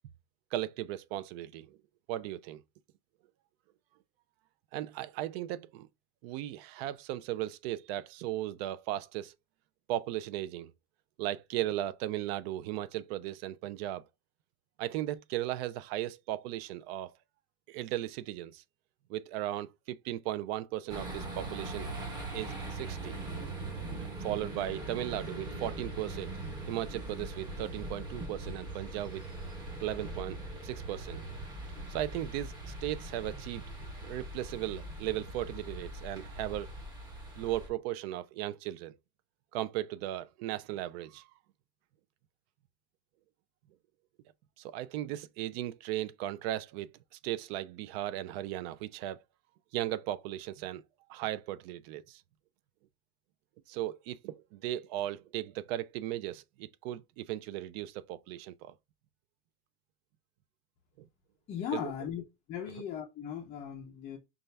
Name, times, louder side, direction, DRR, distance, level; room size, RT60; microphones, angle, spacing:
voice 1, 0.5-1.8 2.1-2.6 4.7-5.9 6.2-9.3 9.9-10.7 11.2-14.0 14.8-17.1 17.7-18.6 19.1-21.9 22.3-23.2 24.0-26.3 26.7-29.2 29.8-30.4 30.6-31.2 31.9-33.6 34.0-36.7 37.4-39.0 39.5-41.2 44.6-46.9 47.2-49.2 49.7-50.8 51.1-52.2 53.7-58.7 61.0-61.1 61.8-61.9, right 13 dB, 55° right, 0.4 m, -36 dB
sound 1, 20.9-37.7, right 2 dB, 10° right, 0.8 m, -41 dB
voice 2, 61.5-62.2 62.5-64.2, left 9 dB, 20° left, 0.4 m, -38 dB
5.4 x 2.3 x 3.2 m
cardioid pair, 175°, 36 cm